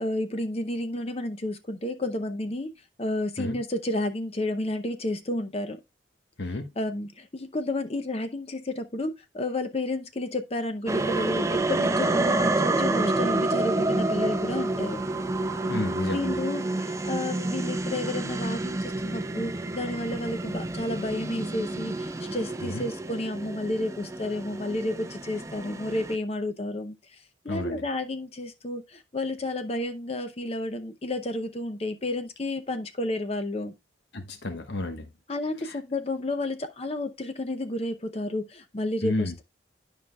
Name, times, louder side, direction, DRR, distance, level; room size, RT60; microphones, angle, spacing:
voice 1, 0.0-2.7 3.0-5.8 6.8-15.0 16.1-26.9 27.4-33.7 35.3-39.4, left 1 dB, 30° left, 0.6 m, -31 dB
sound 1, 10.9-26.2, right 2 dB, 15° right, 0.5 m, -29 dB
voice 2, 15.7-16.4 22.6-22.8 27.5-27.8 34.1-35.1 35.6-35.8 39.0-39.3, left 2 dB, 65° left, 1.1 m, -31 dB
11.5 x 4.9 x 2.3 m
head